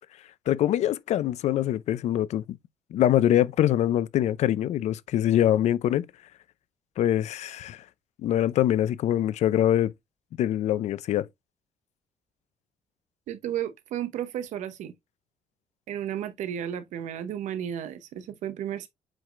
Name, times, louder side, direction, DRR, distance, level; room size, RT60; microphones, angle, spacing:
voice 1, 0.5-2.6 2.9-6.1 7.0-7.8 8.2-9.9 10.4-11.3, left 12 dB, 70° left, 0.5 m, -24 dB
voice 2, 13.3-14.9 15.9-18.9, right 10 dB, 85° right, 1.0 m, -33 dB
7.6 x 4.9 x 2.5 m
cardioid pair, 145°, 12 cm